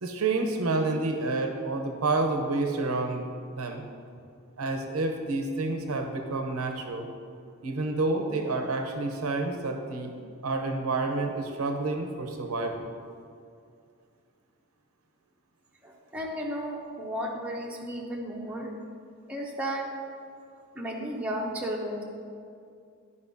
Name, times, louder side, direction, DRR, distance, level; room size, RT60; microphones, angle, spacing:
voice 1, 0.0-3.3 3.5-3.9 4.6-7.1 7.6-10.2 10.4-12.9, right 3 dB, 90° right, 4 dB, 0.8 m, -29 dB
voice 2, 15.8-18.8 19.3-19.8 20.7-22.0, equal, 5° right, -3 dB, 0.7 m, -34 dB
12.0 x 5.3 x 2.7 m, 2.4 s
head